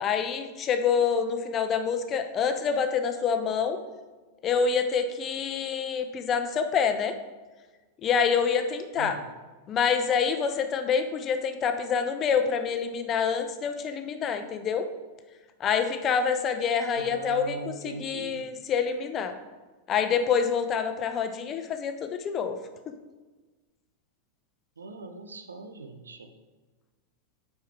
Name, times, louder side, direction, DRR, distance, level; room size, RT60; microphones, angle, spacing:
voice 1, 0.0-3.8 4.4-7.1 8.0-9.2 9.7-14.9 15.6-17.6 17.8-19.3 19.9-22.6, left 6 dB, 30° left, 7 dB, 0.7 m, -26 dB
voice 2, 9.0-9.3 16.9-18.4 24.8-26.3, right 3 dB, 75° right, 7 dB, 0.8 m, -40 dB
8.3 x 5.7 x 4.5 m, 1.3 s
figure-of-eight pair, 90°, 0 cm